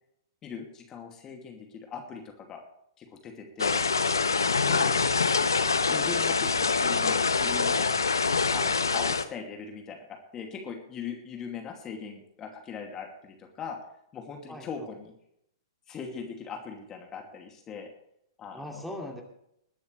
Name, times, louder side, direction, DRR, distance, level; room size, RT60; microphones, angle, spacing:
voice 1, 0.4-2.6 3.0-3.9 4.3-4.9 5.9-7.9 8.5-10.0 10.3-13.8 14.1-15.1 15.9-17.9 18.4-18.9, left 6 dB, 25° left, 2 dB, 2.6 m, -40 dB
sound 1, 3.6-9.2, left 4 dB, 80° left, 1.0 m, -25 dB
voice 2, 18.5-19.2, left 1 dB, ahead, 0 dB, 2.7 m, -41 dB
21.0 x 11.5 x 3.4 m, 0.75 s
figure-of-eight pair, 110°, 2 cm